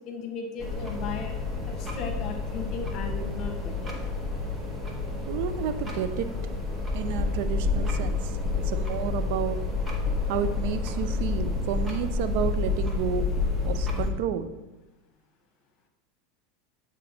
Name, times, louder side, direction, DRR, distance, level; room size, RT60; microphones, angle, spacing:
voice 1, 0.1-1.3 1.8-3.9, left 5 dB, 40° left, 4 dB, 1.0 m, -36 dB
sound 1, 0.6-14.1, left 3 dB, 20° right, 1.2 m, -29 dB
voice 2, 5.3-6.3 6.9-9.6 10.3-13.3 13.6-14.5, right 9 dB, 55° right, 11 dB, 0.4 m, -31 dB
8.2 x 3.9 x 3.9 m, 1.0 s
figure-of-eight pair, 80°, 0 cm